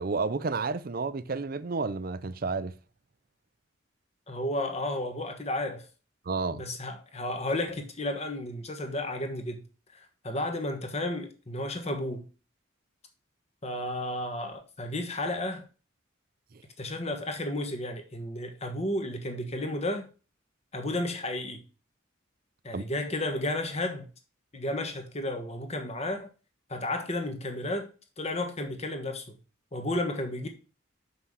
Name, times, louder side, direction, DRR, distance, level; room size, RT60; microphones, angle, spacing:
voice 1, 0.0-2.7 6.3-6.6 22.7-22.8, right 4 dB, 45° right, 0.5 m, -31 dB
voice 2, 4.3-5.9 6.5-9.6 9.9-12.2 13.6-15.6 16.8-20.1 20.7-21.6 22.6-24.1 24.5-26.3 26.7-27.9 28.2-29.4 29.7-30.5, left 1 dB, 30° left, 1.3 m, -32 dB
6.3 x 5.8 x 5.5 m
head